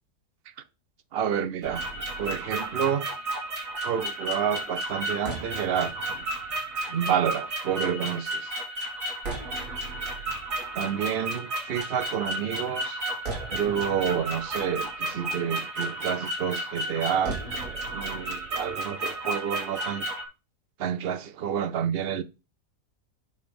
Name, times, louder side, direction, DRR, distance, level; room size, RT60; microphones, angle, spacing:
voice 1, 1.1-1.8 2.2-3.0 3.8-6.2 6.8-8.5 10.8-13.0 13.5-20.1 20.8-22.2, right 8 dB, 75° right, 0.5 m, -29 dB
sound 1, 1.6-20.2, right 1 dB, 55° right, 2.4 m, -33 dB
5.7 x 5.2 x 5.2 m
omnidirectional pair, 1.7 m